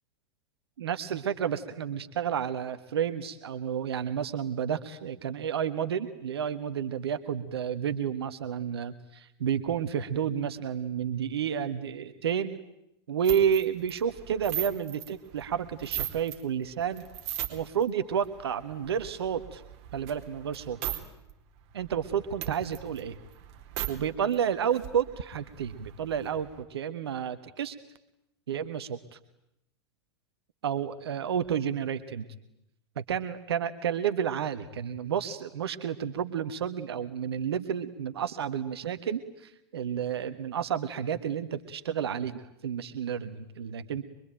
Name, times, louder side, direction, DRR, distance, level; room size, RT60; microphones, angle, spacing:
voice 1, 0.8-12.6 13.1-17.0 17.5-19.6 19.9-21.0 21.7-23.2 23.9-27.7 28.5-29.2 30.6-32.2 32.9-44.0, right 8 dB, 70° right, 10 dB, 1.5 m, -31 dB
sound 1, 13.2-16.4 16.8-17.8 18.2-21.0 21.3-21.4 21.7-23.9 24.3-24.4 24.6-26.6, right 12 dB, 50° right, 4.0 m, -38 dB
24.5 x 24.0 x 9.1 m, 0.85 s
figure-of-eight pair, 95°, 14 cm